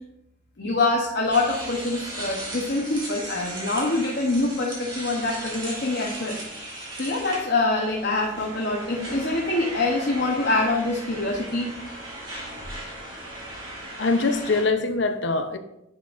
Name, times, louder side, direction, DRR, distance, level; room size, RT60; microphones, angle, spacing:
voice 1, 0.6-6.4 7.0-11.7, left 2 dB, 60° left, 0.9 m, -25 dB
sound 1, 1.3-14.6, right 1 dB, 25° right, 2.3 m, -37 dB
voice 2, 14.0-15.6, left 3 dB, 80° left, 0.7 m, -23 dB
10.0 x 5.9 x 2.5 m
head